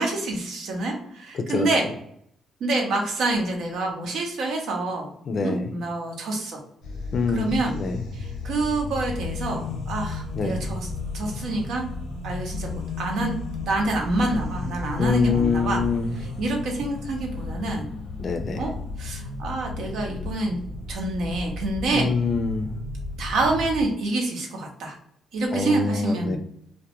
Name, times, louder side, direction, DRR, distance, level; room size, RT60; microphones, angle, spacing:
voice 1, 0.0-1.9 2.6-5.1 5.4-6.6 7.3-7.8 8.1-10.9 11.1-11.8 12.2-15.8 16.4-17.9 18.6-20.6 20.9-22.1 23.2-24.9 25.3-26.4, right 2 dB, 75° right, 1 dB, 0.7 m, -27 dB
voice 2, 1.3-1.7 5.3-5.7 7.1-8.0 10.3-10.6 15.0-16.2 18.2-18.6 21.9-22.8 25.5-26.4, left 4 dB, 50° left, 6 dB, 0.4 m, -25 dB
sound 1, 6.8-23.8, left 3 dB, 90° left, 0.6 m, -34 dB
2.3 x 2.1 x 2.8 m, 0.69 s
cardioid pair, 90°, 0 cm